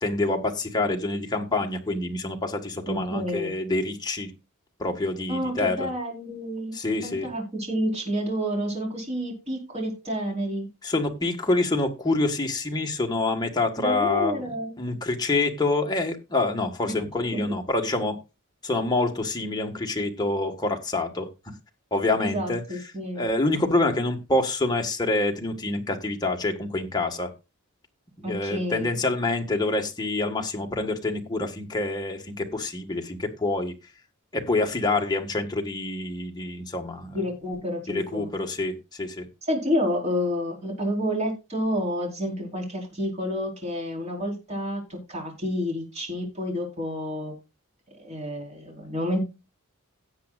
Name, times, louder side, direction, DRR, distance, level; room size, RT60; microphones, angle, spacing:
voice 1, 0.0-4.3 4.8-5.9 6.7-7.3 10.8-18.2 18.6-21.3 21.9-22.6 23.2-27.3 28.2-33.7 34.3-37.2 37.9-39.3, left 2 dB, 20° left, 1.5 m, -26 dB
voice 2, 2.9-3.5 5.3-6.7 7.0-10.7 13.8-14.7 16.9-17.0 17.3-17.6 22.2-23.2 28.2-28.9 37.1-38.3 39.4-47.3 48.0-49.2, equal, 30° right, 4.5 m, -29 dB
17.0 x 7.7 x 2.4 m
head